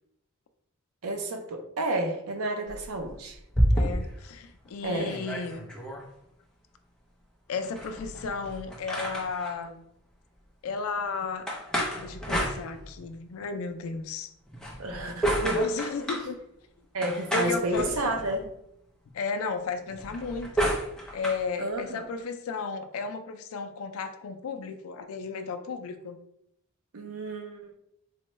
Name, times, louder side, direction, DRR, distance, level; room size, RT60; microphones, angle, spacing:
voice 1, 1.0-3.4 4.8-5.2 14.8-15.6 16.9-18.5 21.6-22.0 26.9-27.7, right 1 dB, 75° right, 4 dB, 0.6 m, -31 dB
sound 1, 2.7-4.2 4.7-4.8 4.9-6.1 7.7-9.5 11.5-13.2 14.5-16.3 17.0-18.4 19.9-21.4, right 1 dB, 5° left, 0.5 m, -30 dB
voice 2, 3.7-5.6 7.5-9.8 10.6-11.5 12.0-14.3 15.4-16.4 17.3-18.4 19.1-20.7 21.1-26.2, left 4 dB, 70° left, 7 dB, 0.4 m, -34 dB
4.2 x 2.2 x 3.0 m, 0.77 s
head